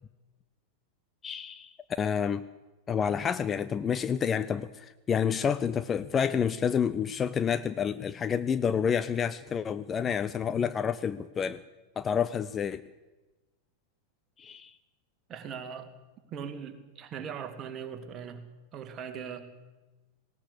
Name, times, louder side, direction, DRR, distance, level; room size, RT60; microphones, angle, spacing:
voice 1, 1.2-1.7 2.0-2.4 2.9-11.6 12.0-12.8 14.4-14.7, left 7 dB, 20° left, 14 dB, 0.6 m, -29 dB
voice 2, 15.3-15.9 16.3-19.5, right 7 dB, 30° right, 6 dB, 2.4 m, -40 dB
19.0 x 18.0 x 8.2 m, 1.1 s
figure-of-eight pair, 90°, 0 cm